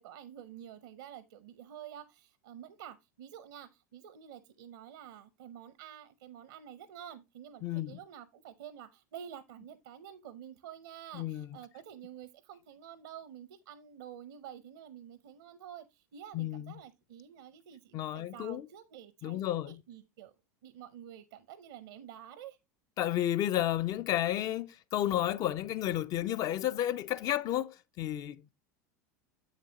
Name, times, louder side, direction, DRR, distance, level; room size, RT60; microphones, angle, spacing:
voice 1, 0.0-20.3 20.6-22.6, right 10 dB, 75° right, 0.7 m, -49 dB
voice 2, 7.6-8.0 11.1-11.5 16.3-16.7 17.9-18.7 19.2-19.8 23.0-28.5, left 12 dB, 45° left, 0.4 m, -32 dB
7.6 x 6.7 x 2.9 m
hypercardioid pair, 90°, 9 cm